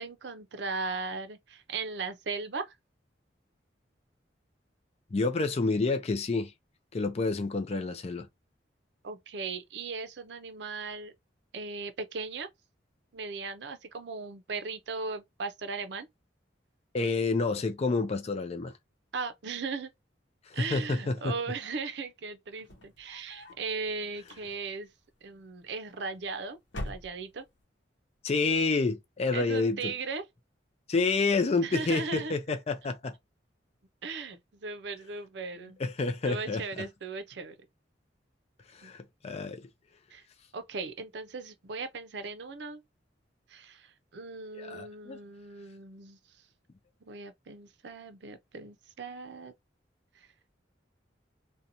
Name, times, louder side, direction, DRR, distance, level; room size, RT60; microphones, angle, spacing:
voice 1, 0.0-2.7 9.0-11.1 11.5-12.5 13.1-16.1 19.1-19.9 20.5-24.9 25.2-26.6 26.8-27.5 29.3-30.3 31.6-32.3 34.0-35.8 36.2-37.6 38.8-38.9 40.1-40.2 40.5-42.8 43.5-46.2 47.0-49.5 50.2-50.3, right 4 dB, 65° right, 0.5 m, -38 dB
voice 2, 5.1-6.5 6.9-8.3 16.9-18.7 20.5-21.3 28.2-29.9 30.9-33.1 35.8-36.9 38.7-39.6 44.5-45.2, left 3 dB, 35° left, 0.4 m, -29 dB
sound 1, 22.5-23.7 24.2-24.9 25.8-26.3 26.6-27.6, left 1 dB, 80° left, 0.8 m, -43 dB
2.8 x 2.2 x 2.5 m
head